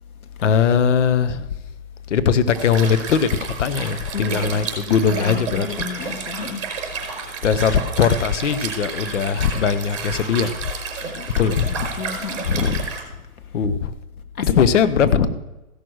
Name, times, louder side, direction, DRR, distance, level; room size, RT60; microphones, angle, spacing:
voice 1, 0.4-1.5 2.1-6.3 7.4-11.0 11.4-11.8 13.5-13.9 14.4-15.3, left 7 dB, 55° left, 0.9 m, -20 dB
Liquid, 2.5-13.0, right 5 dB, 50° right, 4.4 m, -31 dB
voice 2, 4.1-4.7 5.1-6.6 11.0-11.5 11.8-12.8 14.3-14.4 15.1-15.3, left 6 dB, 85° left, 1.4 m, -28 dB
15.5 x 6.4 x 6.3 m
hypercardioid pair, 145°, 42 cm